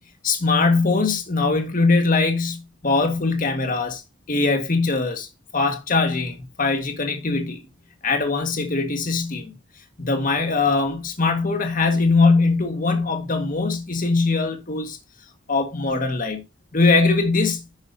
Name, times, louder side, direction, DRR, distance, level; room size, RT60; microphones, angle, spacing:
voice 1, 0.2-4.0 4.3-5.3 5.5-7.6 8.0-9.5 10.0-15.0 15.5-16.4 16.7-17.6, left 3 dB, 45° left, 1.7 m, -21 dB
11.0 x 8.4 x 2.7 m
head